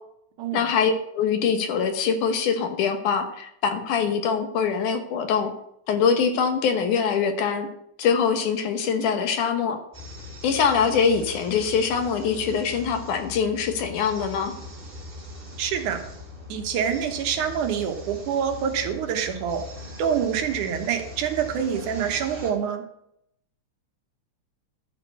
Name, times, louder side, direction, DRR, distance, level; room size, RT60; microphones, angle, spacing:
voice 1, 0.5-5.5 5.9-7.7 8.0-9.8 10.4-14.5, left 6 dB, 85° left, 6 dB, 2.6 m, -23 dB
sound 1, 9.9-22.5, left 2 dB, 20° right, 2.2 m, -41 dB
voice 2, 15.6-16.0 16.5-19.6 20.0-22.8, right 8 dB, 90° right, 5 dB, 2.6 m, -26 dB
12.0 x 4.6 x 6.7 m, 0.77 s
omnidirectional pair, 3.4 m